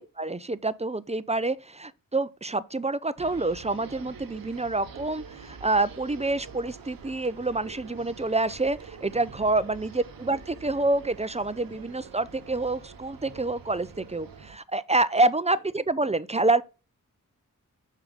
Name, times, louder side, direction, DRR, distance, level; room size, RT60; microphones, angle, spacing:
voice 1, 0.0-16.6, right 2 dB, 20° right, 0.5 m, -27 dB
sound 1, 3.2-14.6, right 6 dB, 90° right, 0.8 m, -46 dB
6.6 x 4.9 x 3.5 m
cardioid pair, 45°, 33 cm